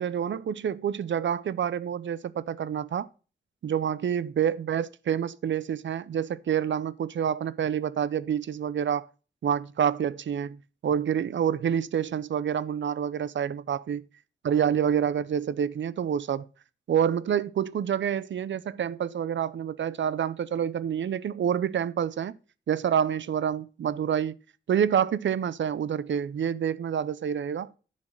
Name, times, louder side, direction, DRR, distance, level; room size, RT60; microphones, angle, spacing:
voice 1, 0.0-3.1 3.6-9.1 9.4-14.0 14.4-16.4 16.9-22.3 22.7-24.3 24.7-27.7, right 8 dB, 75° right, 0.5 m, -27 dB
10.5 x 4.2 x 6.3 m
wide cardioid pair, 130°, 20 cm